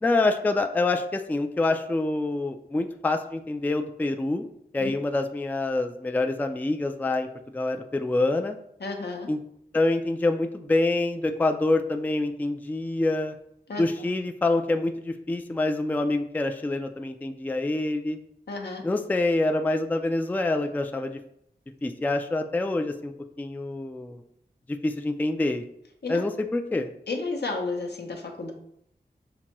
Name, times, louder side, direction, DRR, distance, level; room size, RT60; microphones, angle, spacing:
voice 1, 0.0-4.5 4.7-7.3 7.5-8.6 9.3-9.4 9.7-13.4 13.8-18.2 18.8-21.2 21.8-23.1 23.4-24.2 24.8-25.6 26.1-26.9, left 2 dB, 10° left, 6 dB, 0.3 m, -26 dB
voice 2, 8.8-9.3 13.7-13.9 18.5-18.8 26.0-26.2 27.1-28.5, left 3 dB, 70° left, 2 dB, 0.7 m, -32 dB
5.9 x 2.2 x 2.9 m, 0.74 s
cardioid pair, 45°, 17 cm